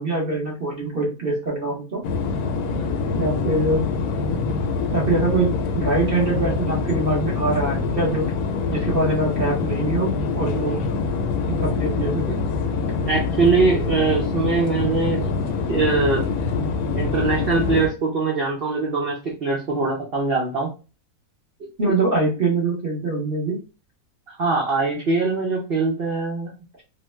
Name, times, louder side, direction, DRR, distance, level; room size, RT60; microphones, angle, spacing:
voice 1, 0.0-2.0 3.1-3.8 4.9-8.2 8.7-10.1 10.4-10.8 11.5-12.4 21.8-23.6, right 2 dB, 45° right, -3 dB, 0.8 m, -23 dB
sound 1, 2.0-17.9, left 4 dB, 75° left, 1.0 m, -25 dB
voice 2, 13.0-15.2 15.7-16.3 16.9-20.7 24.4-26.5, right 4 dB, 85° right, -1 dB, 0.5 m, -22 dB
3.0 x 2.1 x 3.1 m, 0.32 s
omnidirectional pair, 1.8 m